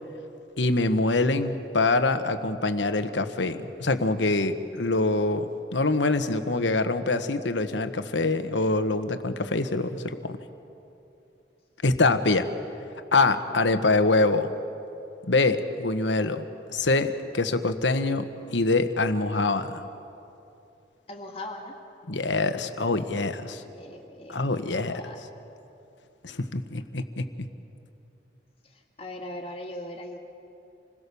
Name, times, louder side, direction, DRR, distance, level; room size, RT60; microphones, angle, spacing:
voice 1, 0.6-10.4 11.8-12.5 13.1-14.5 15.3-19.9 22.1-23.6 24.3-25.0 26.2-27.3, left 3 dB, 75° left, 9 dB, 1.3 m, -25 dB
voice 2, 21.1-21.7 23.6-24.6 24.9-25.2 28.7-30.2, left 1 dB, 30° left, 2 dB, 2.2 m, -40 dB
27.5 x 21.0 x 7.0 m, 2.8 s
head